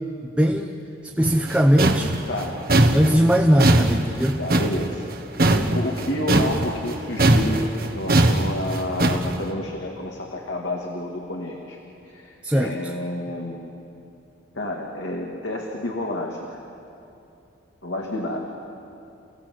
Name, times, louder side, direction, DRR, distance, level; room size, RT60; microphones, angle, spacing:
voice 1, 0.4-0.8 1.0-2.1 2.9-4.4 12.4-12.9, equal, 5° right, 1 dB, 0.9 m, -19 dB
sound 1, 1.2-6.9 7.2-9.4, right 1 dB, 50° right, 1.4 m, -20 dB
voice 2, 2.3-2.6 4.4-5.0 5.5-11.8 12.0-13.7 14.5-16.6 17.8-18.5, left 1 dB, 70° left, -1 dB, 2.3 m, -29 dB
30.0 x 16.5 x 7.9 m, 2.7 s
head